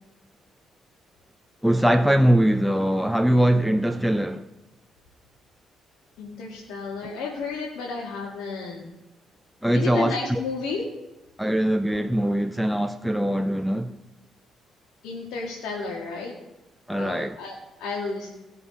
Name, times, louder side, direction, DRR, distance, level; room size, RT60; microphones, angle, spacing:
voice 1, 1.6-4.4 9.6-10.4 11.4-13.9 16.9-17.4, right 1 dB, ahead, 0.6 m, -22 dB
voice 2, 6.2-8.9 9.7-10.9 15.0-16.3 16.9-18.3, left 4 dB, 90° left, 2.0 m, -32 dB
19.0 x 6.8 x 4.2 m
cardioid pair, 90°, 0 cm